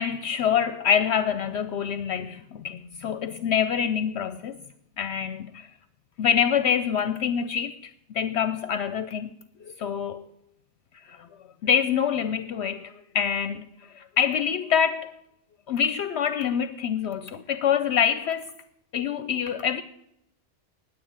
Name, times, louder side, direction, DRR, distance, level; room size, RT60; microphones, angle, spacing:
voice 1, 0.0-4.6 5.0-5.7 6.2-9.3 9.6-10.3 11.0-11.3 11.6-15.1 15.7-18.5 18.9-19.8, left 8 dB, 70° left, 0.8 m, -26 dB
9.9 x 9.3 x 8.6 m
omnidirectional pair, 1.2 m